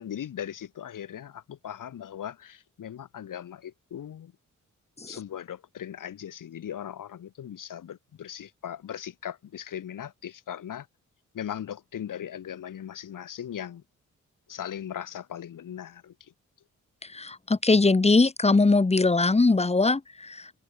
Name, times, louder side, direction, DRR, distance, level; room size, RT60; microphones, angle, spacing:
voice 1, 0.0-4.3 5.0-10.9 11.3-13.8 14.5-16.3, left 10 dB, 90° left, 4.1 m, -38 dB
voice 2, 17.0-20.5, left 3 dB, 20° left, 1.0 m, -21 dB
cardioid pair, 70°, 31 cm